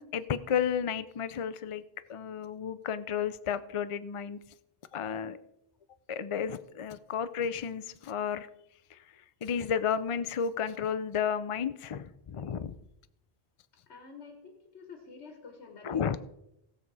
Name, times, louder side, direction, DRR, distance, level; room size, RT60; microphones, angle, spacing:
voice 1, 0.0-1.8 2.1-4.4 4.9-5.4 6.1-8.5 9.4-12.7 15.8-16.2, left 7 dB, 45° left, 13 dB, 0.4 m, -32 dB
voice 2, 13.9-16.2, left 5 dB, 80° left, 4 dB, 1.6 m, -48 dB
17.0 x 6.7 x 4.8 m, 0.83 s
omnidirectional pair, 1.1 m